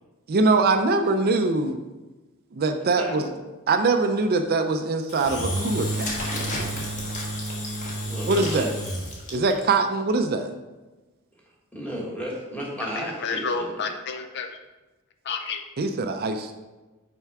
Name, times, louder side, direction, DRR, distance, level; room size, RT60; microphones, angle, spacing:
voice 1, 0.3-1.8 2.6-3.2 3.7-6.2 8.3-8.7 9.3-10.5 15.8-16.5, right 3 dB, 45° right, 7 dB, 0.4 m, -23 dB
voice 2, 3.0-3.3 8.0-8.7 11.7-13.9, right 1 dB, 5° left, -3 dB, 1.4 m, -34 dB
Engine / Drill, 5.1-9.6, equal, 35° left, 1.3 m, -30 dB
voice 3, 12.8-14.6 15.2-15.6, left 4 dB, 50° left, 6 dB, 0.4 m, -30 dB
5.7 x 4.5 x 4.7 m, 1.2 s
head